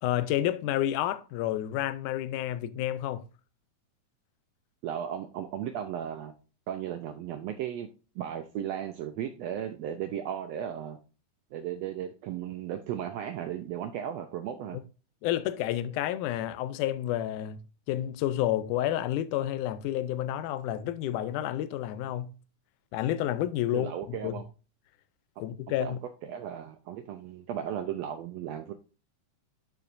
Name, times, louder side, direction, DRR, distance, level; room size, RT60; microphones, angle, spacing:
voice 1, 0.0-3.2 15.2-17.6 17.9-22.3 22.9-24.4 25.4-26.0, left 12 dB, 80° left, 2.0 m, -30 dB
voice 2, 4.8-6.3 6.7-7.9 8.1-11.0 11.5-14.8 23.7-24.4 25.8-26.0 26.2-28.7, right 9 dB, 90° right, 1.4 m, -35 dB
10.5 x 4.6 x 2.5 m
omnidirectional pair, 3.6 m